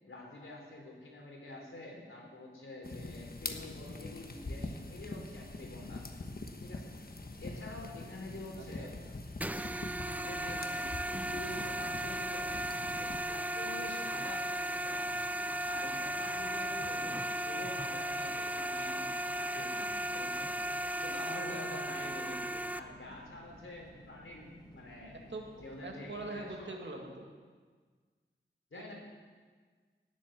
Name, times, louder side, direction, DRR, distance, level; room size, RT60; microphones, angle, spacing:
voice 1, 0.0-6.1 6.6-6.9 7.4-8.9 10.0-10.9 11.2-12.8 13.3-15.3 15.6-20.5 21.0-22.4 22.7-25.2 25.6-26.7 28.7-28.9, left 2 dB, 85° left, -1 dB, 3.6 m, -47 dB
sound 1, 2.8-13.2, left 2 dB, 50° left, 1.2 m, -44 dB
voice 2, 8.6-8.9 22.2-22.5 25.3-25.4 25.8-27.3 28.7-28.9, right 2 dB, 65° right, 1 dB, 2.2 m, -43 dB
sound 2, 9.4-22.8, right 1 dB, 10° right, 0.5 m, -36 dB
sound 3, 12.4-26.6, right 1 dB, 20° left, 2.3 m, -56 dB
18.0 x 7.5 x 7.6 m, 1.5 s
wide cardioid pair, 65°, 20 cm